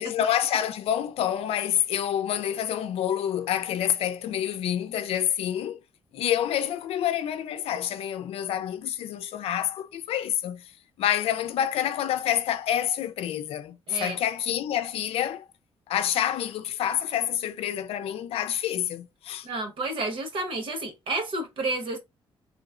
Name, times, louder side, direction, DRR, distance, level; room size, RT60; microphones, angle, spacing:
voice 1, 0.0-5.8 6.1-10.7 11.0-15.5 15.9-19.5, left 10 dB, 85° left, 0.5 m, -28 dB
voice 2, 13.9-14.2 19.4-22.0, right 2 dB, 60° right, 1.2 m, -30 dB
3.1 x 2.1 x 3.7 m
cardioid pair, 120°, 10 cm